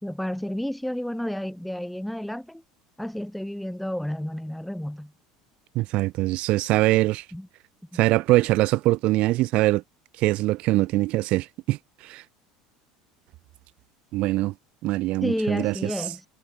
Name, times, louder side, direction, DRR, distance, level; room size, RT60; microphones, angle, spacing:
voice 1, 0.0-2.6 3.0-5.1 7.3-7.5 7.9-8.0 15.2-16.3, equal, ahead, 4.2 m, -31 dB
voice 2, 5.7-7.2 7.9-9.8 10.2-11.8 12.1-12.2 14.1-14.5 14.8-15.7, right 18 dB, 60° right, 0.6 m, -22 dB
supercardioid pair, 95°, 2 cm